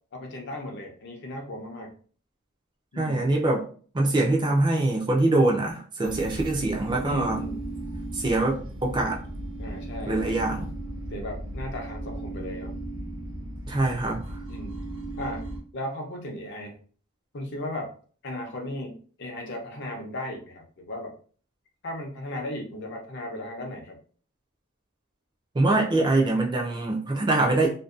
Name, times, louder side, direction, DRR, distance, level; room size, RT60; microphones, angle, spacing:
voice 1, 0.1-1.9 2.9-3.3 7.0-7.7 9.6-10.2 11.1-12.7 14.5-14.8 15.2-16.8 17.3-17.9 18.2-21.1 21.8-24.0, left 1 dB, 50° left, 2 dB, 0.6 m, -36 dB
voice 2, 3.0-3.6 3.9-7.4 8.1-9.2 10.1-10.7 13.7-14.2 25.6-27.7, right 2 dB, 20° right, 0 dB, 0.4 m, -24 dB
sound 1, 6.0-15.6, right 1 dB, 65° right, 0.7 m, -36 dB
2.6 x 2.2 x 2.3 m, 0.42 s
head